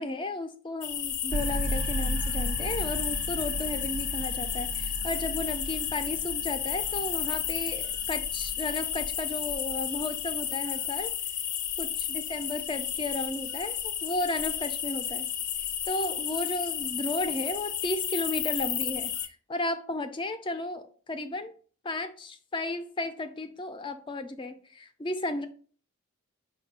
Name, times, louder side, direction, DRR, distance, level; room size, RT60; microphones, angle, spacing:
voice 1, 0.0-11.1 11.8-15.3 15.9-19.1 19.5-21.5 21.8-25.5, left 2 dB, 20° left, 0.3 m, -34 dB
sound 1, 0.8-19.3, left 9 dB, 85° left, 0.5 m, -32 dB
sound 2, 1.3-10.7, right 1 dB, 55° right, 0.3 m, -36 dB
5.1 x 2.2 x 4.3 m
head